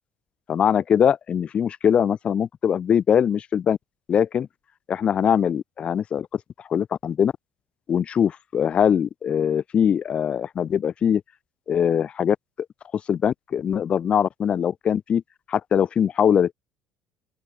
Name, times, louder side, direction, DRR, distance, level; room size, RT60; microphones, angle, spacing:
voice 1, 0.5-3.8 4.1-4.5 4.9-6.4 6.7-7.3 7.9-11.2 11.7-12.4 13.1-15.2 15.5-16.5, left 8 dB, 40° left, 0.4 m, -22 dB
open air
hypercardioid pair, 65°, 3 cm